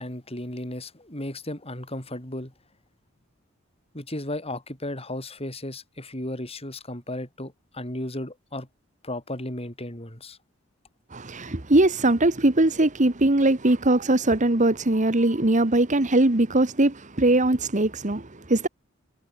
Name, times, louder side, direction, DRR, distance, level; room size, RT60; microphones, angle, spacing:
voice 1, 0.0-2.5 3.9-8.7 9.0-10.4, left 1 dB, 30° left, 7.3 m, -34 dB
voice 2, 11.1-18.7, right 2 dB, 40° right, 1.5 m, -21 dB
head